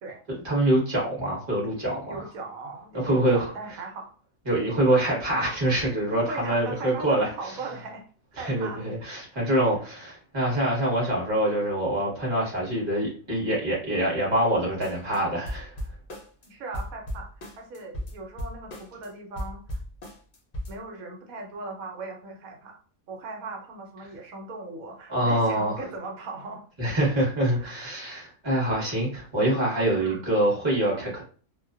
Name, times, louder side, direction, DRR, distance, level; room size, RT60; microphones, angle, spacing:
voice 1, 0.3-2.2 2.9-3.5 4.5-7.3 8.4-15.7 25.1-25.7 26.8-31.2, right 1 dB, 20° right, -5 dB, 0.9 m, -25 dB
voice 2, 2.1-4.1 6.2-8.1 8.3-8.8 16.4-17.3 17.6-19.8 20.7-22.8 23.1-26.6 27.6-27.9 30.0-30.2, right 3 dB, 85° right, 2 dB, 1.2 m, -38 dB
sound 1, 14.8-15.2 15.4-16.5 16.7-19.1 19.4-20.8, equal, 70° left, 0.4 m, -36 dB
2.4 x 2.1 x 2.4 m, 0.41 s
omnidirectional pair, 1.4 m